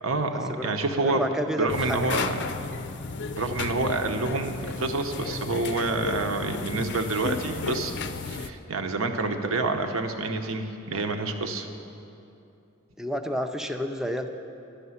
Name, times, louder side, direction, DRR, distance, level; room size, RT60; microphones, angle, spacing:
voice 1, 0.0-1.2 1.6-2.6 3.3-11.7, right 3 dB, 70° right, 5 dB, 0.9 m, -28 dB
voice 2, 1.0-2.0 13.0-14.3, equal, ahead, 5 dB, 0.4 m, -30 dB
sound 1, 1.7-8.5, left 5 dB, 60° left, 0.5 m, -34 dB
11.5 x 6.7 x 9.5 m, 2.7 s
head